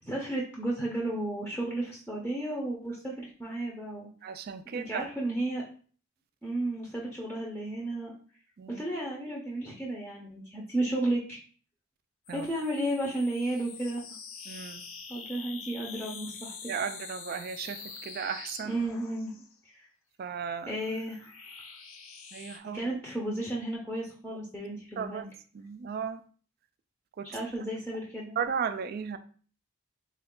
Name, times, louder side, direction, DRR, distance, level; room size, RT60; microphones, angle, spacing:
voice 1, 0.0-4.1 4.7-5.7 6.4-8.1 8.7-11.4 12.3-14.0 15.1-16.5 18.7-19.3 19.7-19.9 20.7-21.3 22.7-25.3 27.3-28.3, right 1 dB, 5° left, 0.6 m, -33 dB
voice 2, 4.2-5.1 8.6-8.8 12.3-12.5 14.5-14.8 16.7-18.8 20.2-20.8 22.3-22.8 25.0-25.2 25.5-26.2 27.2-27.3 28.4-29.2, right 7 dB, 45° right, 0.3 m, -35 dB
sound 1, 12.3-19.6 20.4-22.6, left 5 dB, 80° left, 0.7 m, -45 dB
3.3 x 2.4 x 3.6 m
head